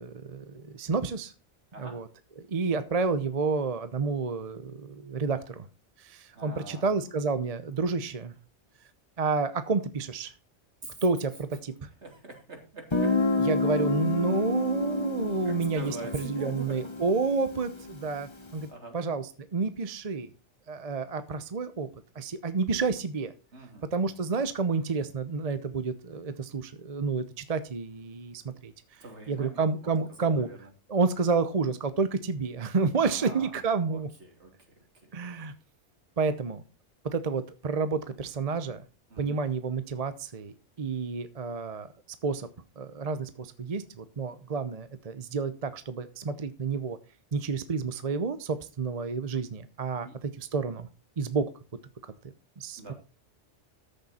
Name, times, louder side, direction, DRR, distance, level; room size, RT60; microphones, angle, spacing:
voice 1, 0.0-1.3 1.8-2.1 2.4-5.7 6.0-8.3 9.2-10.3 11.0-11.9 13.4-18.7 18.9-20.3 20.7-21.9 22.1-23.3 23.9-28.7 29.3-30.5 30.9-34.1 35.1-35.5 36.2-36.6 37.1-38.8 39.2-41.9 42.2-42.5 42.8-47.0 47.3-50.9 51.2-51.5 52.6-52.9, right 4 dB, 35° right, 12 dB, 0.8 m, -30 dB
voice 2, 6.3-6.9 10.8-10.9 12.0-13.1 15.4-16.7 18.7-19.0 23.5-24.1 29.0-30.7 33.1-33.5 33.9-34.5 35.0-35.1 39.1-39.4 50.0-50.2 52.8-52.9, right 2 dB, 70° right, 3 dB, 3.3 m, -44 dB
Guitar, 12.9-18.5, left 3 dB, 25° left, 1.0 m, -29 dB
14.0 x 6.7 x 4.2 m, 0.34 s
omnidirectional pair, 1.2 m